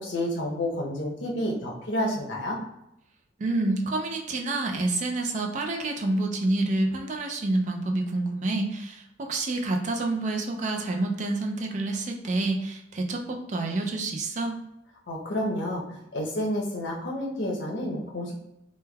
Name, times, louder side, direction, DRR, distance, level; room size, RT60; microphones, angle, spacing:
voice 1, 0.0-2.6 15.1-18.4, left 1 dB, 90° left, -1 dB, 0.7 m, -30 dB
voice 2, 3.4-14.6, right 2 dB, 40° right, 3 dB, 0.3 m, -28 dB
3.1 x 2.1 x 2.2 m, 0.82 s
head